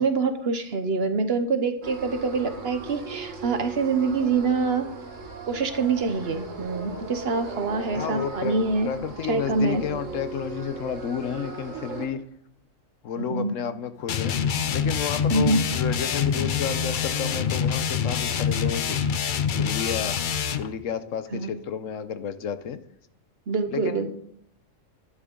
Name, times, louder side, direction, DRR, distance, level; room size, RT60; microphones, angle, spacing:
voice 1, 0.0-4.9 5.5-8.9 9.3-9.8 13.2-13.6 15.3-15.6 21.3-21.5 23.5-24.1, right 4 dB, 50° right, 1.1 m, -25 dB
sound 1, 1.8-12.1, right 4 dB, 70° right, 1.8 m, -38 dB
voice 2, 7.9-8.6 8.8-12.3 13.0-14.4 14.7-19.1 19.5-20.2 20.6-22.8 23.7-24.1, left 8 dB, 75° left, 1.1 m, -31 dB
sound 2, 14.1-20.7, left 7 dB, 50° left, 0.6 m, -26 dB
12.5 x 10.0 x 3.8 m
omnidirectional pair, 1.4 m